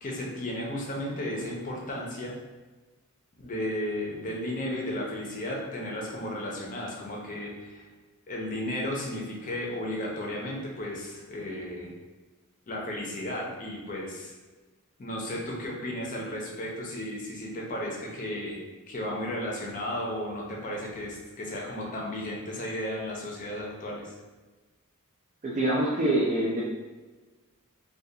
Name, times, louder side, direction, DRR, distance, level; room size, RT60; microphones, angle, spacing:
voice 1, 0.0-2.3 3.4-7.9 8.3-11.9 12.7-14.3 15.0-18.6 18.9-24.1, left 1 dB, 35° left, -2 dB, 0.5 m, -34 dB
voice 2, 25.4-26.6, right 1 dB, 35° right, -5 dB, 0.3 m, -25 dB
2.4 x 2.2 x 2.7 m, 1.3 s
head